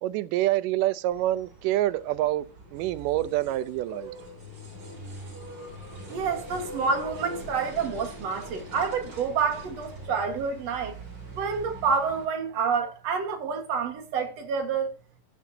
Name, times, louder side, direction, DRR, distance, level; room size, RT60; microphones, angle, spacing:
voice 1, 0.0-2.5 2.7-4.1, right 15 dB, 85° right, 2.2 m, -26 dB
sound 1, 1.1-12.3, right 1 dB, 35° right, 4.2 m, -42 dB
voice 2, 6.1-11.0 11.3-14.9, right 5 dB, 60° right, 2.3 m, -28 dB
14.5 x 7.1 x 2.7 m
omnidirectional pair, 3.8 m